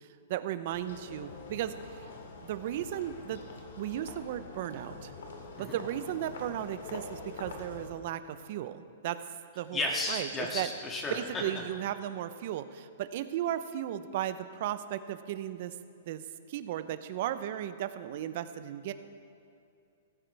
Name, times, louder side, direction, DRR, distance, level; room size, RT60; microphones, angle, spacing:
voice 1, 0.3-1.8 2.4-3.4 3.8-5.1 5.6-9.2 9.5-10.7 11.1-15.7 16.1-16.2 16.5-18.9, right 12 dB, 55° right, 12 dB, 0.8 m, -35 dB
sound 1, 0.7-7.9, left 3 dB, 80° left, 2.2 m, -45 dB
voice 2, 9.7-11.4, left 2 dB, 20° left, 0 dB, 2.3 m, -33 dB
16.0 x 14.5 x 3.5 m, 2.5 s
hypercardioid pair, 140°, 0 cm